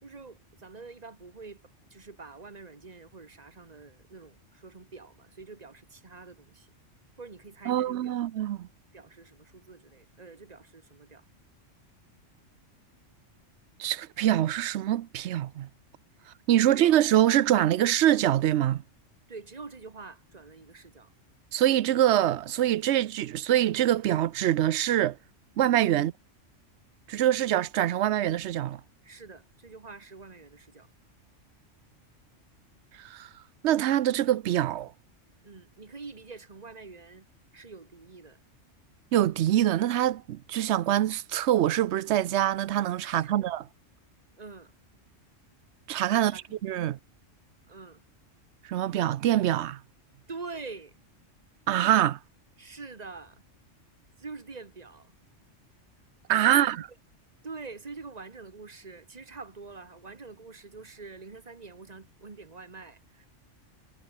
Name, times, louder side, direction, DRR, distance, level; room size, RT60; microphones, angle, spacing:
voice 1, 0.0-1.6 1.9-6.7 7.2-8.1 8.9-11.2 16.2-16.3 16.6-16.9 19.3-21.1 29.0-30.9 35.4-37.3 37.5-38.4 43.0-43.5 44.4-44.7 46.1-46.5 47.7-48.0 50.3-51.0 52.6-53.4 54.2-55.1 56.4-56.7 57.4-63.3, right 4 dB, 35° right, 1.5 m, -45 dB
voice 2, 7.7-8.7 13.8-15.7 16.5-18.8 21.5-25.2 25.6-26.1 27.1-28.8 33.0-33.3 33.6-34.9 39.1-43.6 45.9-47.0 48.7-49.8 51.7-52.2 56.3-56.8, right 12 dB, 65° right, 0.8 m, -24 dB
omnidirectional pair, 1.3 m